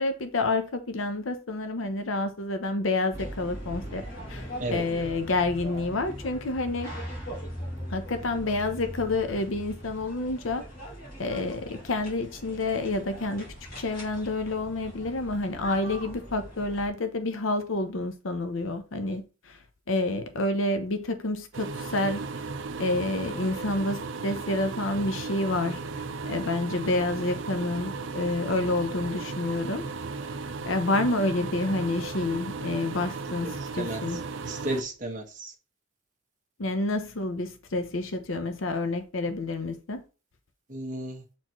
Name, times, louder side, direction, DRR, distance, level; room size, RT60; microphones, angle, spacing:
voice 1, 0.0-4.0 4.3-6.9 7.9-10.6 11.2-13.5 13.7-19.6 19.9-22.4 22.8-29.9 30.6-34.3 36.6-40.0, left 2 dB, 75° left, 0.7 m, -29 dB
sound 1, 3.1-16.9, equal, 45° left, 2.9 m, -40 dB
sound 2, 21.5-34.8, right 4 dB, 70° right, 0.5 m, -35 dB
voice 2, 34.4-35.5 40.7-41.2, right 1 dB, 40° right, 1.4 m, -33 dB
7.4 x 4.4 x 3.0 m
head